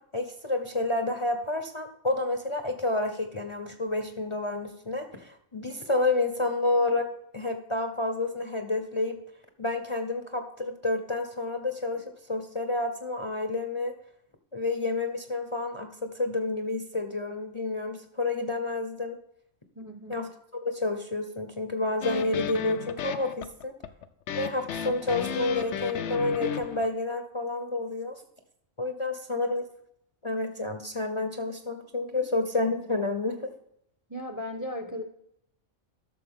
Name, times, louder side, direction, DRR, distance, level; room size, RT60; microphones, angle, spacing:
voice 1, 0.1-7.1 7.3-9.2 9.6-13.9 14.5-19.2 20.1-20.3 20.6-23.7 24.3-28.2 28.8-29.6 30.2-33.4, left 2 dB, 30° left, 6 dB, 0.8 m, -29 dB
voice 2, 19.7-20.3 34.1-35.0, left 1 dB, 15° right, 6 dB, 0.8 m, -36 dB
sound 1, 22.0-26.9, left 9 dB, 70° left, 0.9 m, -34 dB
12.0 x 6.8 x 3.6 m, 0.75 s
omnidirectional pair, 1.3 m